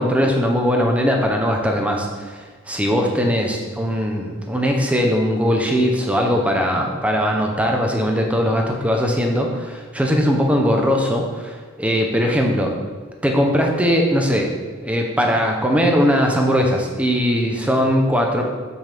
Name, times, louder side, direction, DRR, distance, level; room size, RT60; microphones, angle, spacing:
voice 1, 0.0-12.7 13.2-14.5 14.8-18.4, equal, 5° right, 1 dB, 0.7 m, -20 dB
7.2 x 6.2 x 3.4 m, 1.4 s
head